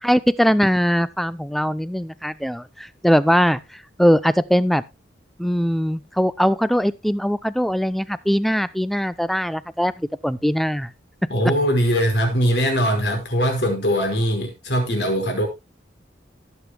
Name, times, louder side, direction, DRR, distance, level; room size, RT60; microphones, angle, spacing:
voice 1, 0.0-3.6 4.0-4.8 5.4-10.9, equal, ahead, 15 dB, 0.5 m, -21 dB
voice 2, 11.3-15.5, equal, 65° left, 2 dB, 5.1 m, -21 dB
18.0 x 8.1 x 2.2 m, 0.23 s
head